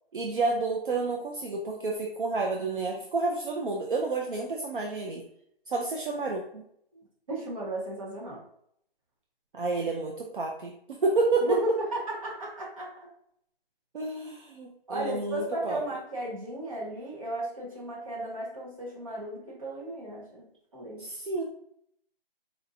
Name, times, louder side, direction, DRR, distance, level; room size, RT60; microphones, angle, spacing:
voice 1, 0.1-5.2 5.7-6.6 9.5-11.6 13.9-15.8 21.0-21.4, right 3 dB, 60° right, 0 dB, 0.6 m, -30 dB
voice 2, 7.3-8.4 11.4-12.9 14.9-20.4 20.7-21.1, right 1 dB, 35° right, -5 dB, 1.3 m, -35 dB
4.3 x 2.8 x 2.6 m, 0.71 s
hypercardioid pair, 175°, 29 cm